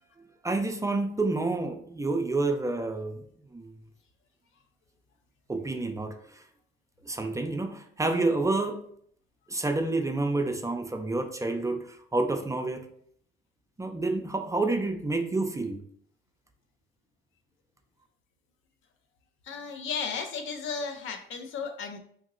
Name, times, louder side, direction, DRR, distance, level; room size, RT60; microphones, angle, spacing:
voice 1, 0.4-3.2 3.5-3.7 5.5-6.4 7.1-8.8 9.5-12.9 13.8-15.8, right 2 dB, 15° right, 5 dB, 0.4 m, -29 dB
voice 2, 19.4-22.0, left 5 dB, 70° left, 6 dB, 0.5 m, -34 dB
2.8 x 2.8 x 2.5 m, 0.63 s
supercardioid pair, 65°, 21 cm